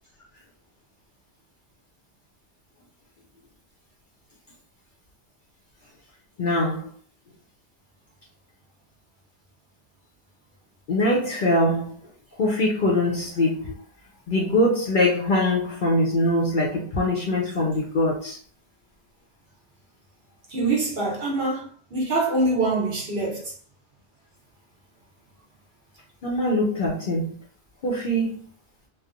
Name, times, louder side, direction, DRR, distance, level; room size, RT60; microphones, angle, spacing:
voice 1, 6.4-6.9 10.9-12.0 12.4-13.7 14.3-18.4 26.2-27.4 27.8-28.4, left 1 dB, 55° left, 0.6 m, -23 dB
voice 2, 20.5-23.5, right 2 dB, 55° right, 1.0 m, -24 dB
3.0 x 2.0 x 2.4 m
omnidirectional pair, 1.2 m